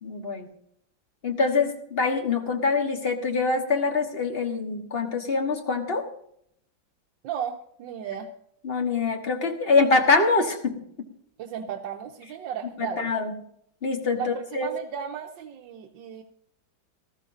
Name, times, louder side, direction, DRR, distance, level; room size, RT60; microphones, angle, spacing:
voice 1, 0.0-0.5 1.2-6.1 8.6-10.8 12.8-13.3 13.8-14.7, left 4 dB, 35° left, 4 dB, 1.4 m, -24 dB
voice 2, 7.2-8.3 11.4-13.1 14.2-16.2, right 8 dB, 75° right, 2 dB, 1.5 m, -35 dB
18.5 x 13.5 x 2.7 m, 0.70 s
omnidirectional pair, 2.1 m